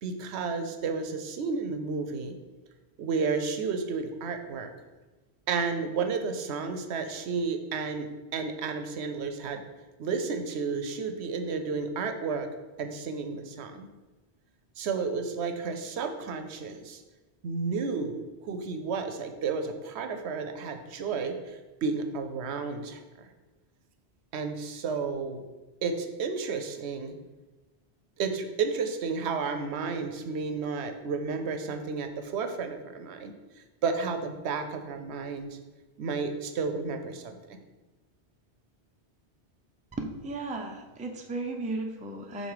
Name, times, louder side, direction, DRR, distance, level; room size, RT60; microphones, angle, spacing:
voice 1, 0.0-2.4 3.0-4.7 5.5-9.6 10.0-12.5 12.8-13.9 14.8-17.0 17.4-23.3 24.3-25.4 25.8-27.1 28.2-33.3 33.8-35.6 36.0-37.6, right 5 dB, 80° right, 7 dB, 0.9 m, -32 dB
voice 2, 40.0-42.5, right 2 dB, 10° right, 2 dB, 0.3 m, -35 dB
5.3 x 4.0 x 4.8 m, 1.2 s
omnidirectional pair, 1.1 m